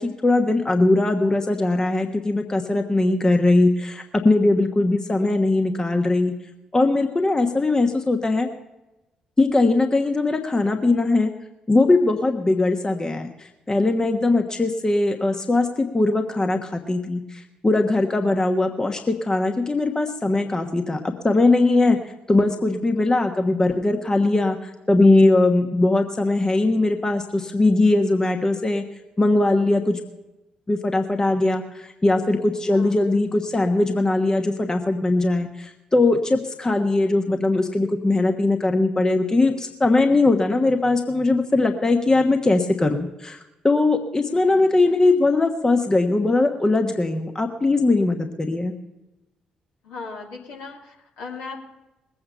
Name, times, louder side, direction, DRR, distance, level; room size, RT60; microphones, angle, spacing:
voice 1, 0.0-6.3 6.7-8.5 9.4-11.3 11.7-22.0 22.3-28.8 29.2-30.0 30.7-43.4 43.6-48.7, left 2 dB, 20° left, 5 dB, 1.3 m, -20 dB
voice 2, 32.7-33.1 44.2-44.8 49.8-51.6, left 4 dB, 65° left, -2 dB, 2.9 m, -38 dB
21.0 x 8.6 x 5.6 m, 0.99 s
figure-of-eight pair, 40°, 3 cm